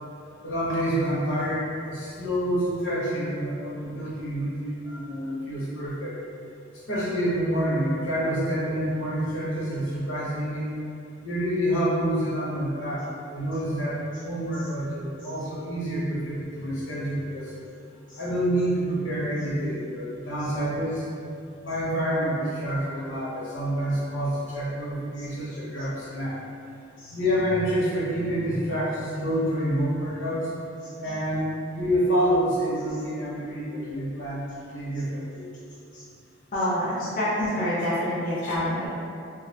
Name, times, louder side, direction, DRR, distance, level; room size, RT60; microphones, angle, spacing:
voice 1, 0.4-6.1 6.9-10.6 11.2-17.5 18.2-21.0 21.6-26.4 27.1-30.4 31.0-35.5 38.4-38.5, equal, 85° left, -7 dB, 0.7 m, -27 dB
voice 2, 36.5-38.9, left 1 dB, 45° left, -9 dB, 0.4 m, -27 dB
2.4 x 2.0 x 2.6 m, 2.5 s
head